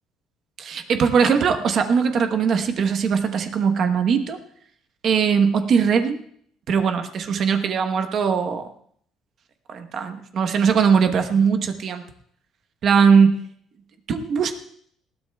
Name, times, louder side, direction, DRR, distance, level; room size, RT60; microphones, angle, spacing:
voice 1, 0.6-4.4 5.0-6.2 6.7-8.6 9.7-12.0 12.8-13.4 14.1-14.5, right 6 dB, 40° right, 7 dB, 1.0 m, -20 dB
20.0 x 15.5 x 2.3 m, 0.63 s
cardioid pair, 175°, 0 cm